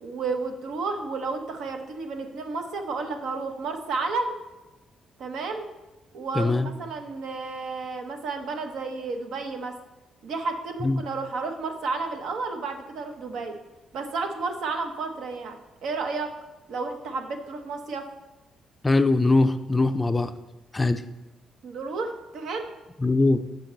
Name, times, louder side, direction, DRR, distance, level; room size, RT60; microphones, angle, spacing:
voice 1, 0.0-4.3 5.2-5.7 6.1-9.8 10.2-13.5 13.9-16.3 16.7-18.1 21.6-22.7, right 4 dB, 75° right, 5 dB, 0.9 m, -32 dB
voice 2, 6.4-6.7 10.8-11.0 18.8-20.3 20.7-21.0 23.0-23.5, left 2 dB, 20° left, 10 dB, 0.4 m, -21 dB
7.0 x 5.9 x 3.9 m, 1.1 s
cardioid pair, 90°, 0 cm